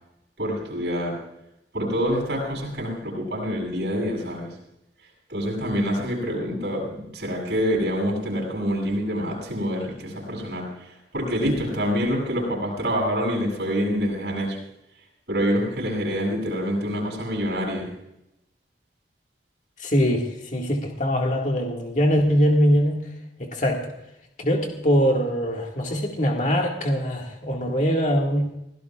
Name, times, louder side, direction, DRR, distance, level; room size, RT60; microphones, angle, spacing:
voice 1, 0.4-1.2 1.7-4.5 5.3-10.7 11.1-14.6 15.3-17.9, equal, 70° right, -1 dB, 7.7 m, -26 dB
voice 2, 19.8-23.0 23.4-23.9 24.4-28.5, equal, 45° left, 0 dB, 2.0 m, -22 dB
24.5 x 16.5 x 2.5 m, 0.83 s
head